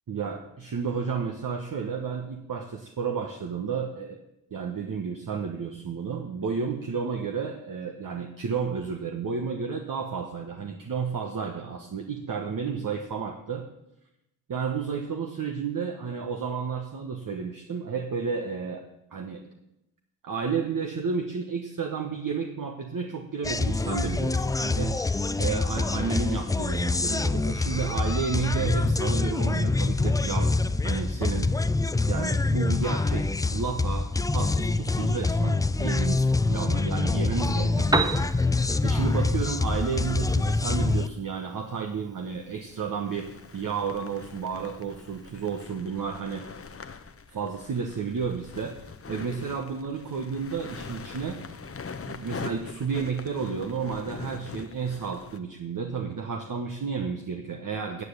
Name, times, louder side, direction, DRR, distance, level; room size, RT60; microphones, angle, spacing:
voice 1, 0.1-4.2 4.5-13.6 14.5-18.8 19.1-19.4 20.2-24.9 25.4-31.5 32.1-38.3 38.8-43.3 43.5-46.4 47.3-48.7 49.1-51.4 52.1-58.0, right 5 dB, 45° right, 3 dB, 1.2 m, -31 dB
sound 1, 23.4-41.1, left 3 dB, 10° left, 0.3 m, -25 dB
Piano, 37.7-45.7, right 2 dB, 10° right, 0.9 m, -36 dB
sound 2, 41.4-41.5 42.3-55.4, left 5 dB, 30° left, 1.0 m, -43 dB
9.5 x 7.7 x 6.7 m, 0.87 s
hypercardioid pair, 40°, 47 cm